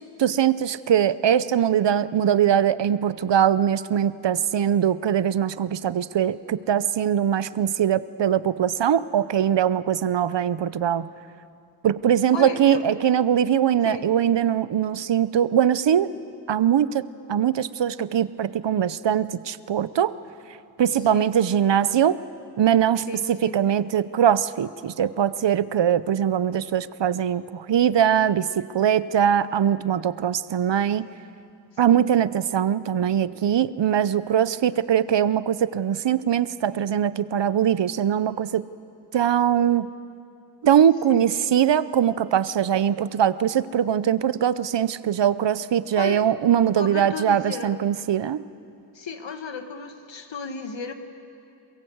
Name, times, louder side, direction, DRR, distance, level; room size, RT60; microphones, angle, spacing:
voice 1, 0.2-11.1 11.8-16.1 16.5-20.2 20.8-22.2 22.6-31.1 31.8-38.6 39.1-39.9 40.6-48.4, right 9 dB, 70° right, 16 dB, 0.7 m, -22 dB
voice 2, 12.3-12.8 13.8-14.0 21.1-21.3 23.1-23.6 31.9-32.1 41.1-41.2 45.9-46.2 46.8-47.7 48.9-50.9, left 5 dB, 75° left, 6 dB, 1.8 m, -34 dB
22.5 x 22.5 x 8.0 m, 2.6 s
wide cardioid pair, 85°, 45 cm